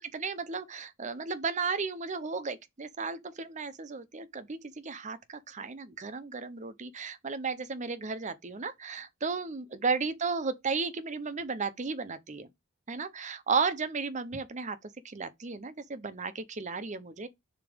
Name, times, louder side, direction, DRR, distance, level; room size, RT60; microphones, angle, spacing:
voice 1, 0.0-12.5 12.9-14.8 15.0-17.3, right 4 dB, 35° right, 0.6 m, -34 dB
7.0 x 3.0 x 5.0 m
head